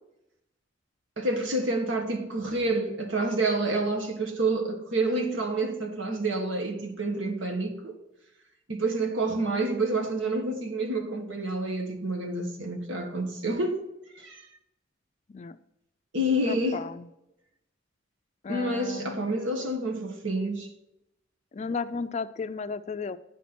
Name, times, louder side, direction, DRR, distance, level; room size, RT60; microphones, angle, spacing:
voice 1, 1.2-8.0 8.7-13.8 14.1-14.5 16.1-16.8 18.5-20.7, right 2 dB, 80° right, 1.4 m, -28 dB
voice 2, 16.5-17.1 18.4-19.3 21.5-23.2, left 5 dB, 35° left, 0.4 m, -34 dB
9.2 x 4.2 x 6.0 m
head